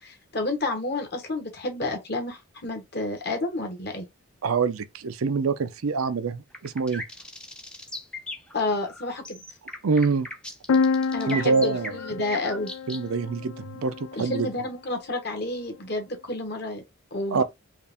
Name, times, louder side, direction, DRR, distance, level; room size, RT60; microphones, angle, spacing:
voice 1, 0.0-4.1 8.5-9.4 11.1-12.7 14.1-16.8 17.1-17.4, left 2 dB, 50° left, 1.4 m, -30 dB
voice 2, 4.4-7.0 9.8-10.3 11.3-11.9 12.9-14.5 17.3-17.4, right 4 dB, 80° right, 0.5 m, -25 dB
sound 1, 6.5-13.0, left 1 dB, 5° left, 0.5 m, -38 dB
sound 2, 10.7-14.4, left 5 dB, 80° left, 0.3 m, -28 dB
4.5 x 2.5 x 3.5 m
head